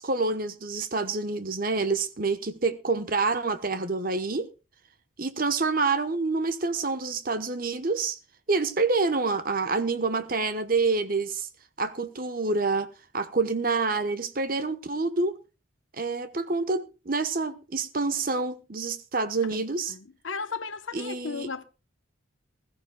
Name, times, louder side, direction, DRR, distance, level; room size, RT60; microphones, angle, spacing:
voice 1, 0.0-4.5 5.2-8.2 8.5-11.5 11.8-12.9 13.1-15.4 15.9-19.9 20.9-21.5, right 3 dB, 45° right, 1.0 m, -27 dB
voice 2, 19.9-21.6, left 4 dB, 80° left, 0.9 m, -35 dB
21.0 x 14.5 x 2.3 m
head